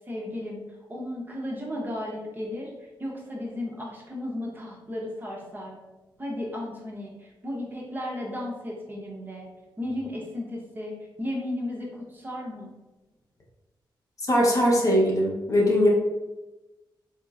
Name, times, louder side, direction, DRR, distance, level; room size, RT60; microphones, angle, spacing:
voice 1, 0.1-0.6 0.9-2.7 3.0-5.8 6.2-9.5 9.8-12.7, left 1 dB, 25° right, -3 dB, 0.8 m, -34 dB
voice 2, 14.3-15.9, equal, 40° left, -2 dB, 0.8 m, -21 dB
3.9 x 2.9 x 2.4 m, 1.1 s
wide cardioid pair, 115°, 8 cm